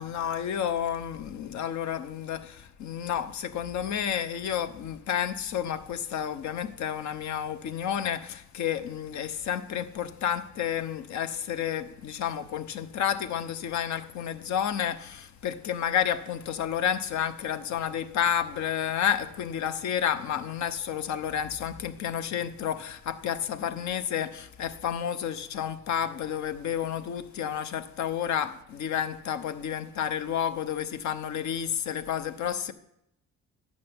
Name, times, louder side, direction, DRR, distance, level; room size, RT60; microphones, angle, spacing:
voice 1, 0.0-32.7, left 9 dB, 70° left, 0.8 m, -30 dB
12.0 x 8.2 x 3.5 m
cardioid pair, 90°, 30 cm